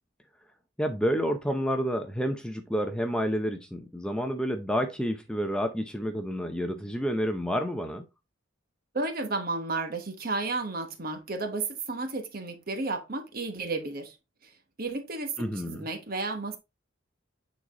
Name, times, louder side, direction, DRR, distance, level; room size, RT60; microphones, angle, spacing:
voice 1, 0.8-8.0 15.4-15.8, equal, 5° left, 0.6 m, -29 dB
voice 2, 8.9-14.2 14.4-16.6, right 3 dB, 45° right, 1.2 m, -33 dB
9.0 x 4.1 x 2.9 m
head